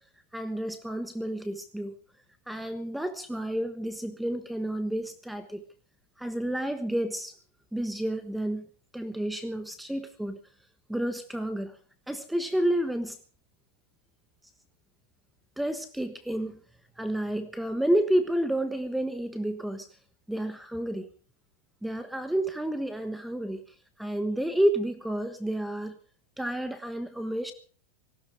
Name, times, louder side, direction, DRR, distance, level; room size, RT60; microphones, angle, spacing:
voice 1, 0.3-1.9 2.5-5.6 6.2-7.3 7.7-8.7 8.9-10.4 10.9-11.7 12.1-13.2 15.6-16.6 17.0-19.9 20.3-21.1 21.8-23.6 24.0-26.0 26.4-27.5, right 1 dB, 5° right, 10 dB, 1.3 m, -30 dB
19.0 x 15.5 x 4.8 m, 0.40 s
supercardioid pair, 140°, 0 cm